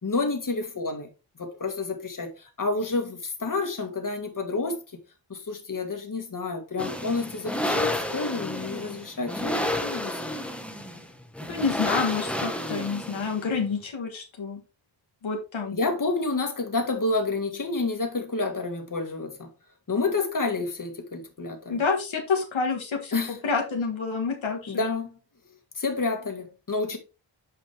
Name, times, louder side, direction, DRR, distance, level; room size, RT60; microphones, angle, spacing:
voice 1, 0.0-1.1 1.4-5.0 5.3-10.2 15.7-19.5 19.9-21.8 23.1-23.4 24.7-25.1 25.8-27.0, left 3 dB, 45° left, 1.8 m, -29 dB
sound 1, 6.8-13.6, left 1 dB, 5° left, 1.1 m, -30 dB
voice 2, 11.5-14.6 15.2-15.8 21.7-24.8, left 5 dB, 90° left, 1.8 m, -28 dB
8.3 x 5.3 x 3.4 m
wide cardioid pair, 85°, 45 cm